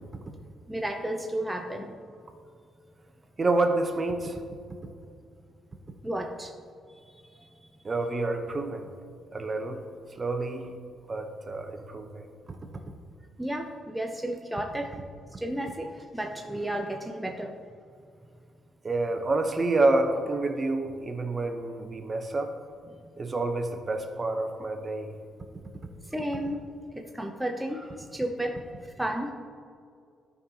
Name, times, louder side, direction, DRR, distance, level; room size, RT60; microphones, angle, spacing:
voice 1, 0.7-2.0 6.0-6.5 7.0-7.5 13.4-15.0 15.3-17.5 26.1-26.6 26.9-29.3, right 1 dB, 5° right, 2 dB, 0.6 m, -33 dB
voice 2, 3.4-4.4 7.8-8.9 9.3-9.8 10.1-10.7 11.1-12.3 18.8-22.5 23.2-25.1, right 2 dB, 30° right, 5 dB, 0.9 m, -28 dB
12.5 x 5.4 x 2.9 m, 2.3 s
cardioid pair, 90°, 0 cm